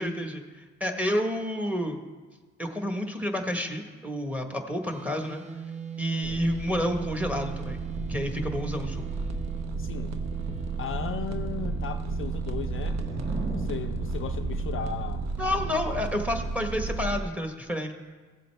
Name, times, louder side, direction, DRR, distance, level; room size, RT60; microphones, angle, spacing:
voice 1, 0.0-2.0 2.6-5.4 6.0-7.8 8.1-9.0 15.4-17.9, left 1 dB, 5° right, 4 dB, 1.2 m, -30 dB
sound 1, 4.8-15.1, right 7 dB, 25° right, 0.7 m, -41 dB
voice 2, 6.1-6.5 9.8-10.2 10.8-13.0 13.5-15.6, left 9 dB, 45° left, 7 dB, 0.4 m, -37 dB
sound 2, 6.2-17.2, right 4 dB, 60° right, 1.0 m, -33 dB
sound 3, 12.3-16.0, right 1 dB, 40° right, 2.1 m, -39 dB
16.0 x 7.6 x 3.3 m, 1.4 s
cardioid pair, 90°, 30 cm